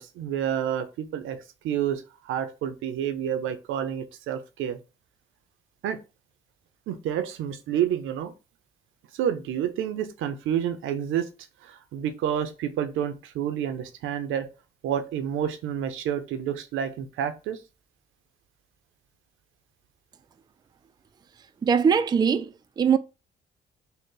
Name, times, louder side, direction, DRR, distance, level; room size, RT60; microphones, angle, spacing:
voice 1, 0.0-1.4 1.6-2.0 2.3-4.8 5.8-6.0 6.9-8.3 9.2-11.3 11.9-14.5 14.8-17.6, right 9 dB, 85° right, 0.6 m, -29 dB
voice 2, 21.6-23.0, right 6 dB, 20° right, 0.3 m, -22 dB
3.9 x 2.1 x 3.8 m
cardioid pair, 90°, 20 cm